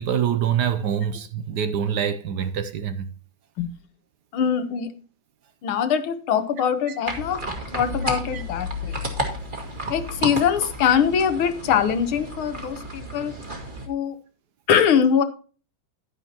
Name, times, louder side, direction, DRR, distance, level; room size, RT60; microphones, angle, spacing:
voice 1, 0.0-3.1 8.3-8.4, right 8 dB, 65° right, 1.1 m, -25 dB
voice 2, 4.3-4.9 5.6-7.4 7.7-9.0 9.9-13.3 13.9-14.2 14.7-15.2, left 8 dB, 90° left, 1.9 m, -22 dB
sound 1, 7.1-13.9, equal, 25° right, 2.2 m, -32 dB
11.0 x 9.7 x 2.9 m
omnidirectional pair, 2.2 m